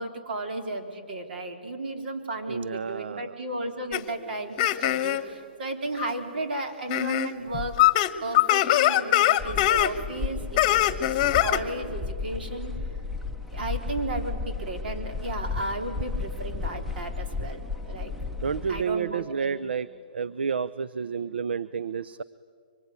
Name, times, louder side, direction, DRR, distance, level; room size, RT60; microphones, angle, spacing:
voice 1, 0.0-7.7 8.2-12.7 13.5-18.1 18.7-19.6, right 2 dB, 70° right, 5 dB, 4.1 m, -34 dB
voice 2, 2.5-3.3 18.4-19.9 20.1-22.2, right 6 dB, 85° right, 17 dB, 0.6 m, -30 dB
sound 1, 3.9-4.0 4.6-5.2 6.0-6.1 6.9-7.3 7.5-9.9 10.6-11.6, left 14 dB, 30° left, 1.2 m, -22 dB
sound 2, 9.4-18.8, left 4 dB, 5° right, 0.8 m, -34 dB
24.5 x 24.0 x 9.7 m, 2.1 s
hypercardioid pair, 155°, 6 cm